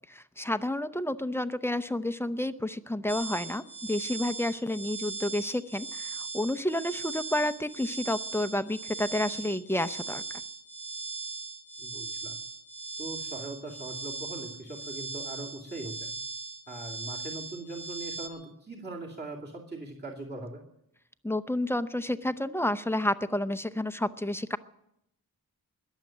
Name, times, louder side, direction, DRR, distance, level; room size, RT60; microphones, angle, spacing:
voice 1, 0.4-10.2 21.2-24.6, left 1 dB, 5° left, 11 dB, 0.7 m, -30 dB
sound 1, 3.1-18.3, right 4 dB, 90° right, 1.6 m, -39 dB
voice 2, 11.8-12.4 13.0-16.2 16.7-20.6, right 2 dB, 25° right, -2 dB, 2.6 m, -40 dB
21.0 x 7.4 x 9.0 m, 0.80 s
wide cardioid pair, 75°, 37 cm